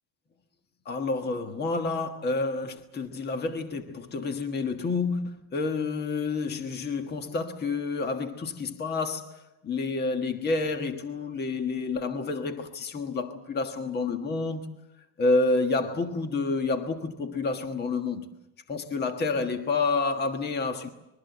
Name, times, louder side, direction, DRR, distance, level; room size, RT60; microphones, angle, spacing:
voice 1, 0.8-14.7 15.2-18.3 18.7-20.9, left 3 dB, 25° left, 1.5 m, -29 dB
26.0 x 22.0 x 7.9 m
cardioid pair, 160°, 41 cm